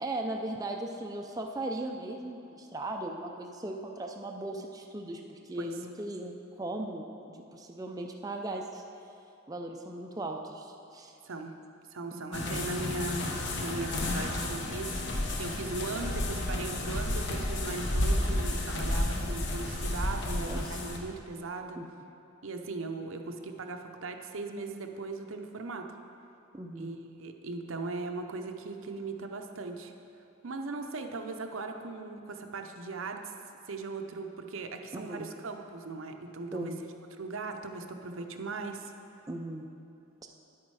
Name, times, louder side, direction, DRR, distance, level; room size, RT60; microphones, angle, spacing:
voice 1, 0.0-8.8 9.5-11.1 12.1-12.4 20.4-20.8 21.8-21.9 26.5-26.9 34.9-35.3 36.5-36.8 39.3-39.7 40.2-40.3, right 2 dB, 15° right, 2 dB, 0.4 m, -38 dB
voice 2, 11.9-13.3 13.6-21.8 22.4-25.9 26.8-29.9 30.4-33.3 33.7-36.7 37.2-38.9, right 3 dB, 70° right, 4 dB, 0.7 m, -38 dB
sound 1, 12.3-21.0, left 1 dB, 55° left, 1.0 m, -31 dB
10.0 x 8.7 x 4.8 m, 2.7 s
head